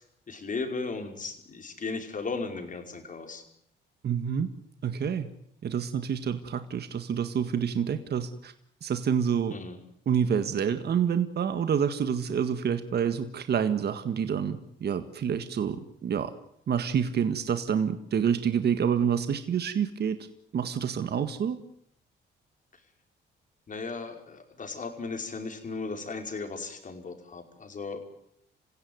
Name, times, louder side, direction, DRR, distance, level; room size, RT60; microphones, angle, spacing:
voice 1, 0.0-3.4 9.5-9.8 23.7-28.0, left 4 dB, 40° left, 5 dB, 5.4 m, -36 dB
voice 2, 4.0-4.5 4.8-5.3 5.6-8.5 8.8-9.6 10.1-16.3 16.7-20.2 20.5-21.6, right 7 dB, 55° right, 9 dB, 1.8 m, -28 dB
28.0 x 16.0 x 9.6 m, 0.71 s
cardioid pair, 90°, 20 cm